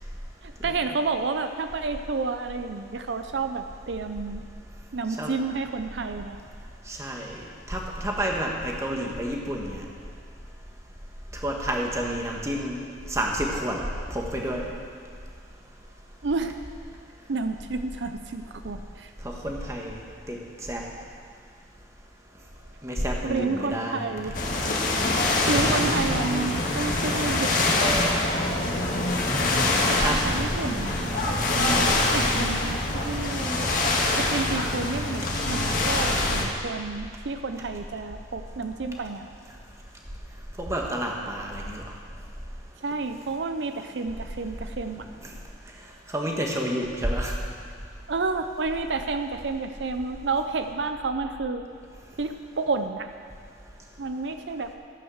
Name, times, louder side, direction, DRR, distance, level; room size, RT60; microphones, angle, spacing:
voice 1, 0.4-4.5 4.9-6.4 16.2-16.6 17.3-19.1 23.2-24.4 25.5-27.6 29.9-31.1 32.1-33.6 34.2-39.3 42.8-45.1 48.1-51.7 52.2-53.1 54.0-54.7, right 3 dB, 80° right, 8 dB, 0.6 m, -30 dB
voice 2, 6.9-7.4 7.7-9.8 11.4-12.8 13.1-13.8 14.1-14.7 19.2-20.0 20.3-20.4 20.7-20.8 22.8-24.3 28.6-28.7 30.0-30.3 31.0-31.3 40.6-41.8 46.1-47.3, right 1 dB, 15° right, 0 dB, 1.4 m, -29 dB
sound 1, 24.3-36.4, left 2 dB, 50° left, 1.6 m, -24 dB
13.5 x 8.7 x 6.4 m, 2.3 s
head